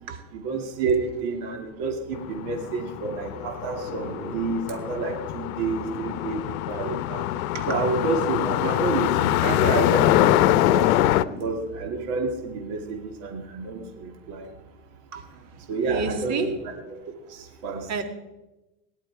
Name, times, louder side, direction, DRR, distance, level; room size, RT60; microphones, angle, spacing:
voice 1, 0.3-7.3 7.7-10.9 11.4-14.5 15.7-17.0 17.6-17.8, right 4 dB, 55° right, 2 dB, 2.7 m, -29 dB
sound 1, 2.1-11.2, left 14 dB, 85° left, 0.8 m, -24 dB
sound 2, 3.5-7.7 8.4-12.4, right 1 dB, 25° right, 2.6 m, -44 dB
voice 2, 15.1-16.5 17.9-18.0, right 5 dB, 40° right, 6 dB, 2.1 m, -31 dB
18.0 x 11.5 x 4.8 m, 1.0 s
supercardioid pair, 145°, 42 cm